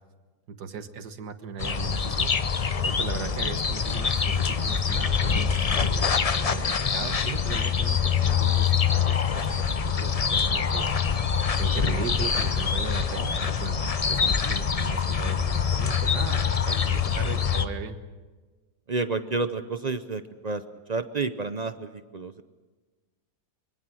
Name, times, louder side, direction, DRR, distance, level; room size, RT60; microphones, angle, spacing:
voice 1, 0.5-2.4 2.8-9.5 9.8-18.0, right 6 dB, 75° right, 9 dB, 1.9 m, -38 dB
sound 1, 1.6-17.7, left 6 dB, 50° left, 0.4 m, -25 dB
voice 2, 18.9-20.6 20.9-22.4, right 3 dB, 50° right, 10 dB, 0.5 m, -30 dB
25.0 x 23.0 x 6.2 m, 1.3 s
omnidirectional pair, 1.8 m